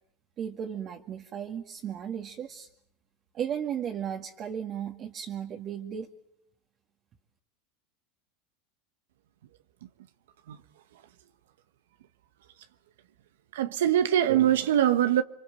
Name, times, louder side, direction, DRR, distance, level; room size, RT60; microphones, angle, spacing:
voice 1, 0.4-2.7 3.3-6.1, right 8 dB, 40° right, 2.0 m, -35 dB
voice 2, 13.5-15.2, right 11 dB, 85° right, 1.2 m, -23 dB
29.5 x 23.5 x 7.7 m
supercardioid pair, 115°, 0 cm